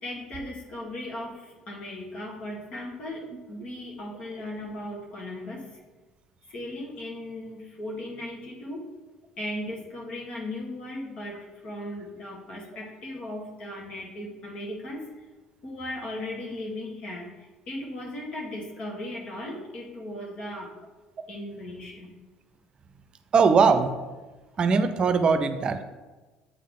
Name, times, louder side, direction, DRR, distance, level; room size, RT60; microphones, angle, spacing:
voice 1, 0.0-5.7 6.5-8.9 9.4-15.0 15.6-20.7 21.3-22.1, left 1 dB, 55° left, -2 dB, 1.9 m, -37 dB
voice 2, 23.3-23.9 24.6-25.8, right 5 dB, 45° right, 9 dB, 0.6 m, -20 dB
8.1 x 3.7 x 3.7 m, 1.2 s
supercardioid pair, 75°, 2 cm